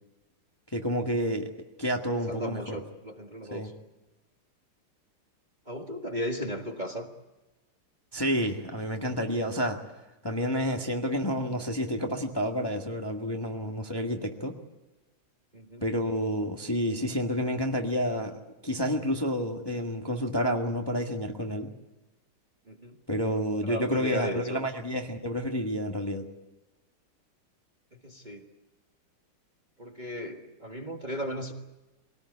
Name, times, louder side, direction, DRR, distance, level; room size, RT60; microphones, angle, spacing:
voice 1, 0.7-1.5 1.8-2.8 3.5-3.7 8.1-9.8 10.2-14.5 15.8-18.3 18.6-21.7 23.1-26.2, equal, 15° left, 2 dB, 1.4 m, -29 dB
voice 2, 2.3-3.7 5.7-7.1 15.5-15.8 22.7-23.0 23.6-24.7 27.9-28.5 29.8-31.5, equal, 25° right, 2 dB, 1.6 m, -35 dB
23.5 x 18.5 x 9.6 m, 1.1 s
omnidirectional pair, 2.3 m